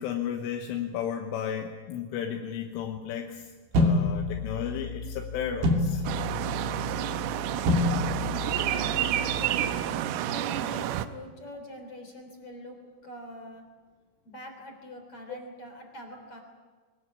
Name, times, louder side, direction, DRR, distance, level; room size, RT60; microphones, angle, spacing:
voice 1, 0.0-3.5 3.8-6.0, left 8 dB, 80° left, 3 dB, 3.6 m, -33 dB
sound 1, 3.7-9.8, left 2 dB, 50° right, 3.8 m, -29 dB
sound 2, 6.0-11.1, right 12 dB, 80° right, 3.5 m, -29 dB
voice 2, 8.4-13.6 14.2-16.4, equal, 30° left, 4 dB, 3.7 m, -44 dB
23.5 x 19.0 x 8.6 m, 1.4 s
omnidirectional pair, 6.0 m